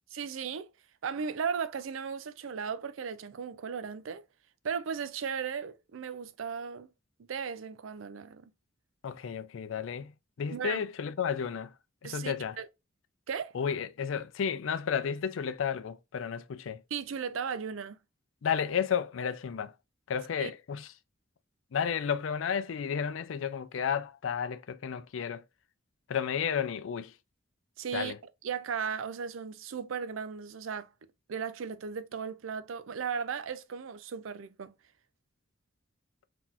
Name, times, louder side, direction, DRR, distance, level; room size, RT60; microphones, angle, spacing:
voice 1, 0.1-0.7 1.0-4.2 4.6-6.9 7.3-8.5 10.5-10.8 12.0-12.7 13.3-13.6 16.9-18.0 20.4-20.5 27.8-28.1 28.4-30.9 31.3-34.7, right 6 dB, 80° right, 0.5 m, -36 dB
voice 2, 9.0-10.1 10.4-11.7 12.0-12.6 13.5-16.8 18.4-19.7 20.1-20.9 21.7-25.4 26.1-27.1 27.9-28.2, left 7 dB, 70° left, 0.4 m, -32 dB
3.9 x 2.9 x 2.4 m
head